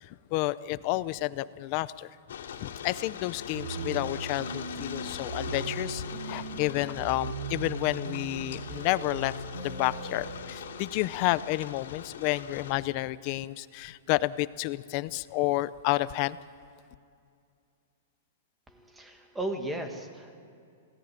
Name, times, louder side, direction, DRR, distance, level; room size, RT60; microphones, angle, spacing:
voice 1, 0.0-2.1 2.6-9.3 9.6-16.4, left 18 dB, 30° left, 16 dB, 0.5 m, -30 dB
sound 1, 2.3-12.7, left 8 dB, 85° left, 3.0 m, -42 dB
sound 2, 3.5-10.4, right 3 dB, 80° right, 6.0 m, -38 dB
voice 2, 18.7-20.4, right 1 dB, 5° right, 5 dB, 1.7 m, -36 dB
27.5 x 17.5 x 8.9 m, 2.4 s
supercardioid pair, 175°, 0 cm